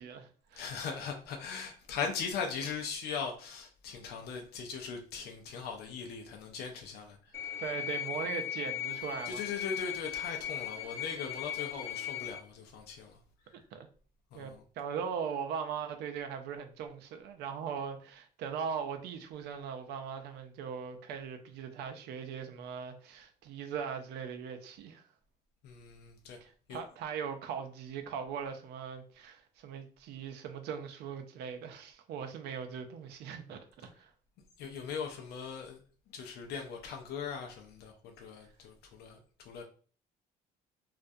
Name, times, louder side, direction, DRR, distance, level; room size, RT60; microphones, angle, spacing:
voice 1, 0.0-0.7 7.6-9.4 13.7-13.9 14.3-14.5 14.8-25.0 26.4-34.1, right 7 dB, 80° right, 0.5 m, -40 dB
voice 2, 0.5-7.3 8.1-8.2 9.2-13.2 14.3-14.6 25.6-26.4 26.7-26.8 34.6-35.8 36.1-39.2 39.4-39.6, left 6 dB, 70° left, 0.5 m, -39 dB
sound 1, 7.3-12.4, left 10 dB, 15° left, 0.4 m, -38 dB
2.4 x 2.1 x 2.6 m
cardioid pair, 110°, 17 cm